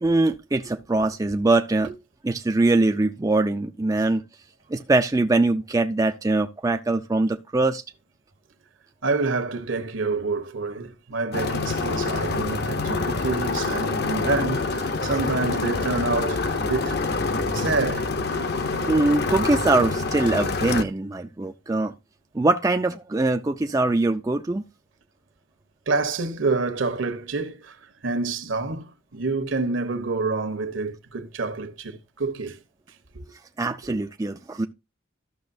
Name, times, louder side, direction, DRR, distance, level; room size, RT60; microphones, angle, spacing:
voice 1, 0.0-1.9 2.2-4.2 4.7-7.8 18.9-21.9 22.3-24.6 33.6-34.7, right 2 dB, 15° right, 0.4 m, -22 dB
voice 2, 9.0-17.0 17.5-18.1 18.8-18.9 25.9-32.6 33.1-33.2 33.9-34.0, right 3 dB, 70° right, 1.1 m, -28 dB
sound 1, 11.3-20.8, left 3 dB, 50° left, 0.8 m, -26 dB
13.5 x 6.3 x 2.6 m
head